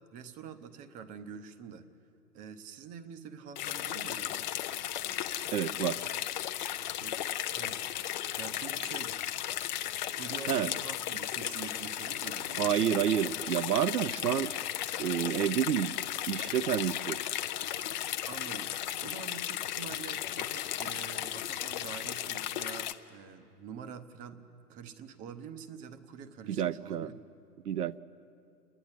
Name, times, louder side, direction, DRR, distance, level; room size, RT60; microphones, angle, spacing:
voice 1, 0.1-1.9 2.3-4.5 7.0-7.2 7.5-7.9 8.4-9.3 10.1-12.7 17.9-27.1, right 7 dB, 15° right, 11 dB, 0.7 m, -46 dB
sound 1, 3.6-22.9, left 12 dB, 30° left, 0.6 m, -35 dB
voice 2, 5.5-6.0 10.5-10.7 12.6-14.5 15.0-15.9 16.3-17.2 26.5-27.1 27.6-28.0, right 10 dB, 70° right, 18 dB, 0.7 m, -29 dB
29.0 x 10.5 x 9.7 m, 2.6 s
figure-of-eight pair, 120°, 48 cm